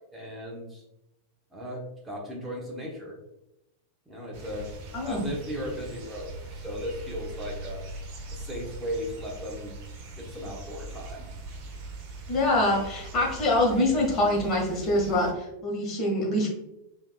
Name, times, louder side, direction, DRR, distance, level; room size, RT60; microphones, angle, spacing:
voice 1, 0.1-0.8 1.5-3.2 4.1-4.7 5.0-7.8 8.3-9.7 10.2-11.3, equal, 5° right, -3 dB, 1.1 m, -36 dB
sound 1, 4.3-15.3, right 2 dB, 45° right, 0.8 m, -41 dB
voice 2, 4.9-5.2 12.3-16.5, left 1 dB, 30° left, -1 dB, 1.4 m, -25 dB
5.1 x 3.6 x 2.3 m, 0.88 s
figure-of-eight pair, 90°, 0 cm